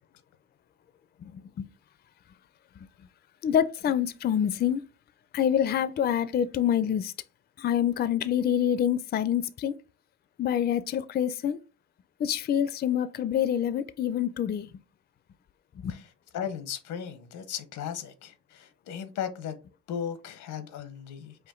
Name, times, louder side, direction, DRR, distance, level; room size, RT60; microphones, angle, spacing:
voice 1, 1.2-1.7 3.4-4.8 5.3-7.1 7.6-9.8 10.4-11.6 12.2-14.7 15.8-16.0, left 9 dB, 35° left, 0.4 m, -26 dB
voice 2, 15.9-19.6 19.9-21.5, left 8 dB, 90° left, 0.8 m, -36 dB
5.0 x 2.6 x 3.7 m
cardioid pair, 90°, 30 cm